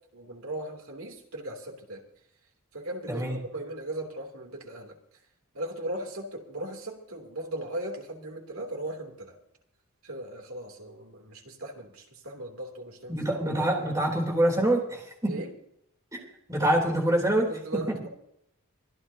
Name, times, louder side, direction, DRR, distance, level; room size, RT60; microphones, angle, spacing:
voice 1, 0.1-2.0 2.7-5.0 5.5-9.4 10.0-13.4 13.7-13.8 15.3-15.5 17.5-18.1, right 1 dB, 80° right, 2 dB, 3.1 m, -38 dB
voice 2, 3.1-3.4 13.1-15.4 16.1-16.2 16.5-18.0, right 1 dB, 15° right, 0 dB, 3.4 m, -26 dB
24.5 x 13.5 x 2.9 m, 0.73 s
head